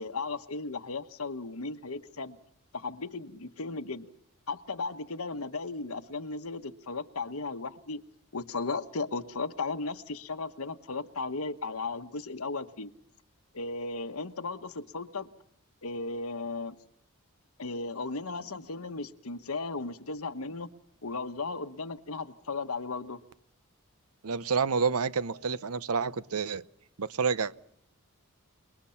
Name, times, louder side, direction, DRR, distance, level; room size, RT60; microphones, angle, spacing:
voice 1, 0.0-2.4 2.7-4.1 4.5-8.0 8.3-12.9 13.5-15.3 15.8-16.8 17.6-20.7 21.0-23.2, left 3 dB, 75° left, 1.2 m, -36 dB
voice 2, 24.2-26.6 27.0-27.5, right 5 dB, 80° right, 0.8 m, -29 dB
29.0 x 21.0 x 5.8 m
head